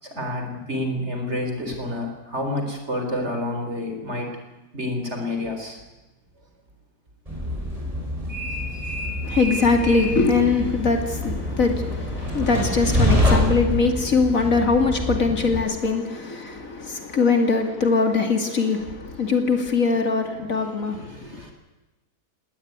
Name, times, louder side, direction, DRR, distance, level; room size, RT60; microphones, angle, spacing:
voice 1, 0.0-4.3 4.7-5.8 8.7-8.8 20.3-21.5, left 1 dB, 45° right, 4 dB, 4.2 m, -29 dB
Train, 7.3-15.6, left 1 dB, 20° right, 7.1 m, -26 dB
voice 2, 9.2-21.4, left 4 dB, 55° left, 5 dB, 2.8 m, -22 dB
19.0 x 19.0 x 9.5 m, 1.1 s
omnidirectional pair, 1.7 m